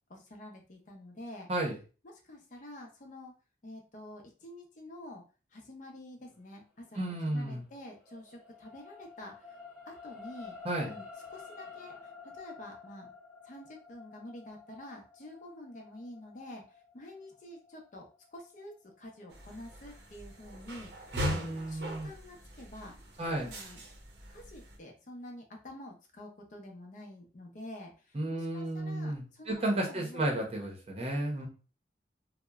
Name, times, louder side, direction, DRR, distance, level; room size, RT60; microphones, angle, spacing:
voice 1, 0.1-1.5 2.0-3.3 3.6-5.2 5.5-7.0 7.3-9.6 9.8-10.6 10.9-11.0 11.3-13.1 13.4-18.1 18.3-22.9 23.2-23.8 24.3-30.3 31.4-31.5, left 1 dB, 45° left, 1 dB, 0.6 m, -48 dB
voice 2, 6.9-7.6 10.6-10.9 21.1-22.1 23.2-23.5 28.1-31.5, right 1 dB, 35° right, -1 dB, 0.7 m, -33 dB
sound 1, 7.4-19.8 20.3-20.4, left 5 dB, 5° right, 0.8 m, -51 dB
sound 2, 19.3-24.8, equal, 75° right, 0.6 m, -41 dB
2.8 x 2.0 x 2.3 m, 0.35 s
head